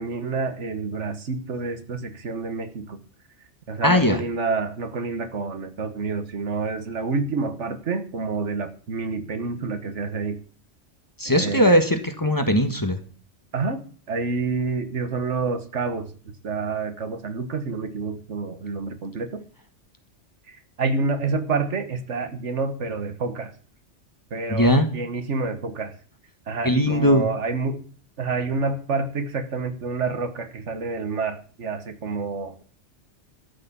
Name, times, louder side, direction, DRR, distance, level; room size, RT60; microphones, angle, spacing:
voice 1, 0.0-3.0 3.7-10.4 11.3-11.7 13.5-16.1 16.4-19.4 20.5-23.5 24.3-25.9 26.5-27.8 28.2-32.6, right 4 dB, 80° right, 9 dB, 1.7 m, -28 dB
voice 2, 3.8-4.2 11.2-13.0 24.5-24.9 26.6-27.2, equal, 15° left, 7 dB, 1.5 m, -19 dB
13.0 x 6.7 x 8.5 m, 0.41 s
omnidirectional pair, 1.2 m